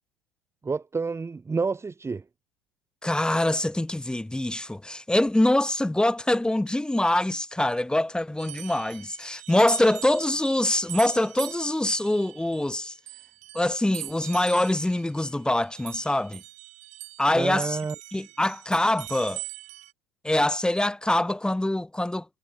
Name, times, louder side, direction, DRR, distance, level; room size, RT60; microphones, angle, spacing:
voice 1, 0.6-2.2 17.3-17.9, right 4 dB, 15° right, 3.1 m, -29 dB
voice 2, 3.0-12.9 13.5-16.4 17.2-17.8 18.1-19.4 20.2-22.3, left 1 dB, 5° left, 2.1 m, -24 dB
sound 1, 8.4-17.3 17.6-19.9, right 16 dB, 40° right, 2.8 m, -41 dB
figure-of-eight pair, 85°, 20 cm